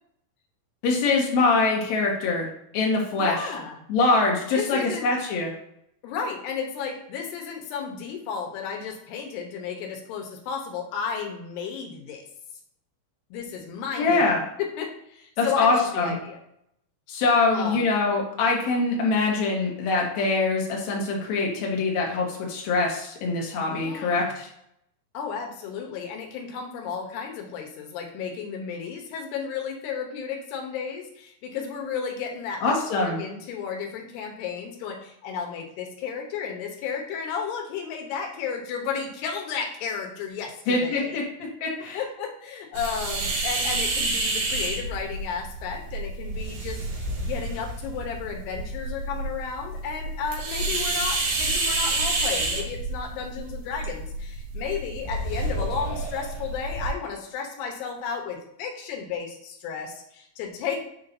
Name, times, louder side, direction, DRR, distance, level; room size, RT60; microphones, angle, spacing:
voice 1, 0.8-2.5 2.7-3.3 3.9-5.5 14.0-14.4 15.4-16.1 17.1-24.5 32.6-33.2 40.7-41.2 41.6-42.0, left 3 dB, 60° left, -1 dB, 2.2 m, -23 dB
voice 2, 3.2-3.9 4.5-5.1 6.0-12.2 13.3-14.3 14.8-16.4 17.5-17.9 23.7-24.3 25.1-41.2 41.9-60.8, left 6 dB, 85° left, 2 dB, 3.0 m, -33 dB
sound 1, 42.8-56.9, right 2 dB, 75° right, 3.7 m, -29 dB
7.3 x 5.7 x 2.7 m, 0.74 s
omnidirectional pair, 4.7 m